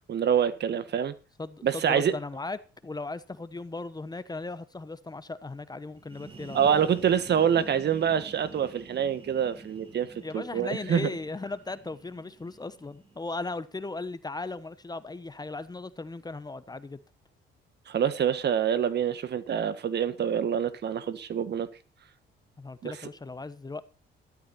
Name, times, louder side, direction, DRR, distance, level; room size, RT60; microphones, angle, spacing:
voice 1, 0.1-1.1 1.6-2.1 6.5-10.1 10.3-11.1 17.9-21.7 22.8-23.0, right 8 dB, 60° right, 1.5 m, -26 dB
voice 2, 1.4-6.8 10.2-17.0 22.6-23.8, left 3 dB, 20° left, 1.1 m, -37 dB
sound 1, 6.0-13.6, right 3 dB, 25° right, 4.2 m, -48 dB
13.5 x 12.5 x 4.2 m
cardioid pair, 90°, 20 cm